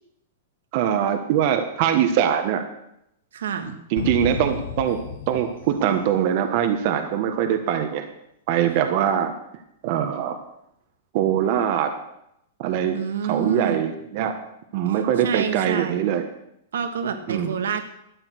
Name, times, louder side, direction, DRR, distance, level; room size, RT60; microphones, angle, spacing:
voice 1, 0.7-2.6 3.9-8.1 8.5-9.3 9.8-10.4 11.1-12.0 12.6-13.0 13.3-14.4 14.7-16.2 17.3-17.6, right 9 dB, 50° right, 6 dB, 1.3 m, -22 dB
voice 2, 3.3-3.8 12.9-13.8 14.9-16.0 16.7-17.9, right 7 dB, 85° right, 8 dB, 1.6 m, -28 dB
sound 1, 4.0-6.7, left 7 dB, 75° left, 1.3 m, -34 dB
12.5 x 8.9 x 6.2 m, 0.79 s
hypercardioid pair, 140°, 0 cm